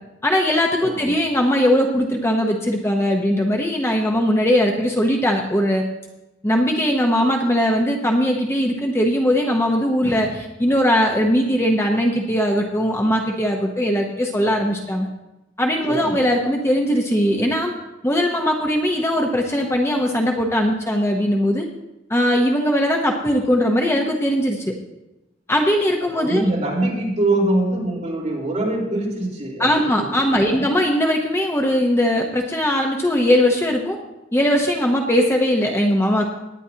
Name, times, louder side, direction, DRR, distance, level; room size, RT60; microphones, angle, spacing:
voice 1, 0.2-5.8 6.4-15.1 15.6-17.8 18.0-21.7 22.1-24.6 25.5-26.5 29.6-34.0 34.3-36.3, equal, 15° left, 1 dB, 0.8 m, -20 dB
voice 2, 26.2-29.7 30.3-30.7, right 1 dB, 40° right, -4 dB, 4.0 m, -23 dB
18.5 x 9.9 x 2.8 m, 0.97 s
head